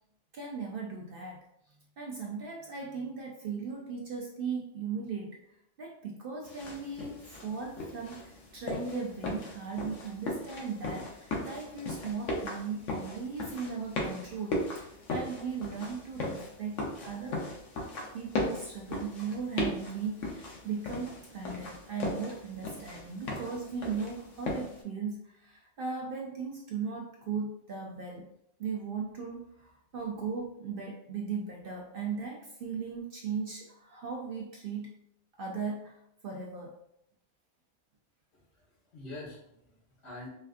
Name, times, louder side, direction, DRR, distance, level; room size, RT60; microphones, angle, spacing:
voice 1, 0.3-1.4 2.0-5.4 5.8-16.8 17.0-17.4 18.1-28.3 28.6-34.9 35.4-36.0 36.2-36.8, right 5 dB, 60° right, -1 dB, 0.6 m, -37 dB
sound 1, 6.4-24.8, left 2 dB, 80° left, 1.1 m, -37 dB
voice 2, 38.3-40.3, left 2 dB, 60° left, -5 dB, 1.3 m, -46 dB
4.2 x 2.4 x 2.4 m, 0.76 s
omnidirectional pair, 1.3 m